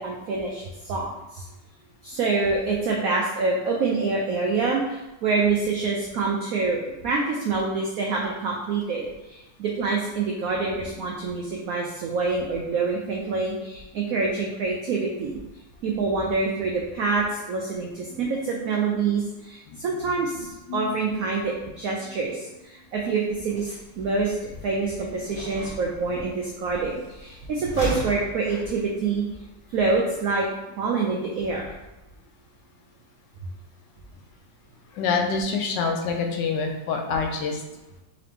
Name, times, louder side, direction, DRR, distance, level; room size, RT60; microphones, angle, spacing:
voice 1, 0.0-1.5 2.0-15.4 15.8-24.4 24.6-29.2 29.7-30.5 30.8-31.7, right 4 dB, 85° right, -2 dB, 0.7 m, -26 dB
sound 1, 23.2-30.5, left 1 dB, 35° left, 1.0 m, -39 dB
voice 2, 34.9-37.6, left 5 dB, 75° left, 2 dB, 1.1 m, -26 dB
3.8 x 2.8 x 3.4 m, 1.0 s
omnidirectional pair, 2.0 m